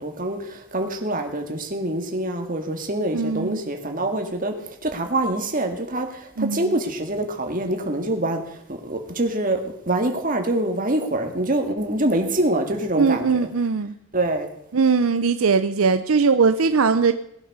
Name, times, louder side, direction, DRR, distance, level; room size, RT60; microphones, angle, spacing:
voice 1, 0.0-4.6 4.8-8.4 8.7-9.6 9.9-13.3 14.1-14.5, right 1 dB, 40° right, 4 dB, 2.0 m, -25 dB
voice 2, 3.1-3.6 6.4-6.8 13.0-14.0 14.7-17.1, right 5 dB, 70° right, 10 dB, 0.6 m, -20 dB
19.0 x 8.8 x 6.7 m, 0.74 s
head